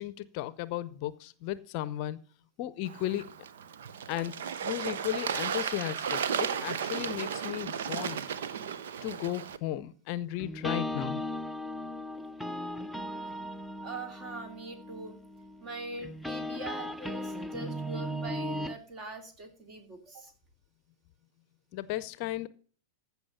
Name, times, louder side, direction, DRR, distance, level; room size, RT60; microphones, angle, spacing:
voice 1, 0.0-2.2 2.6-3.3 4.1-4.3 4.6-8.2 9.0-11.2 21.7-22.5, left 14 dB, 45° left, 17 dB, 0.7 m, -35 dB
Bird / Water, 2.9-9.6, right 7 dB, 65° right, 0.8 m, -34 dB
sound 1, 10.4-18.7, left 1 dB, ahead, 0.6 m, -37 dB
voice 2, 13.8-15.2 15.6-20.3, right 2 dB, 35° right, 7 dB, 2.8 m, -42 dB
15.0 x 5.7 x 5.7 m, 0.41 s
figure-of-eight pair, 95°, 0 cm